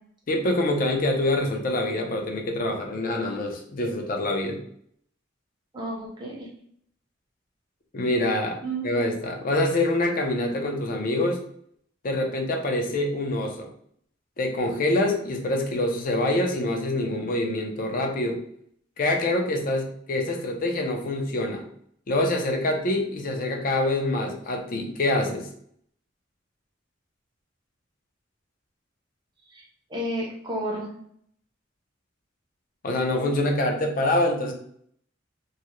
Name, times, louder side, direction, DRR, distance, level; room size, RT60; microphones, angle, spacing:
voice 1, 0.3-4.6 7.9-8.6 8.8-11.4 12.0-13.7 14.4-18.4 19.0-21.6 22.1-25.5 32.8-34.5, left 1 dB, 45° left, 3 dB, 0.4 m, -25 dB
voice 2, 5.7-6.5 8.6-8.9 29.5-29.6 29.9-30.9, right 1 dB, 25° right, -3 dB, 0.5 m, -31 dB
2.3 x 2.0 x 2.8 m, 0.66 s
head